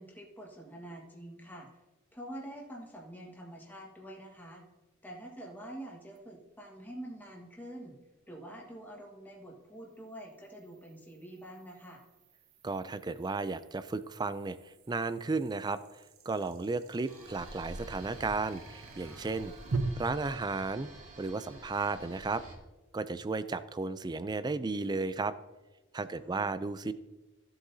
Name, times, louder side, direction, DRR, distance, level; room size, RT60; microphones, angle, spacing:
voice 1, 0.0-1.7 2.1-4.6 5.0-8.0 8.3-12.0 26.2-26.6, right 1 dB, 10° left, -2 dB, 1.5 m, -46 dB
sound 1, 6.2-6.3 9.7-19.8, right 4 dB, 75° right, 0.8 m, -45 dB
voice 2, 12.6-15.8 16.3-19.5 19.9-20.9 21.2-22.4 22.9-25.3 25.9-26.9, right 3 dB, 20° right, 14 dB, 0.3 m, -34 dB
sound 2, 17.0-22.5, right 1 dB, 35° right, 2.7 m, -48 dB
15.0 x 7.7 x 2.7 m, 1.1 s
head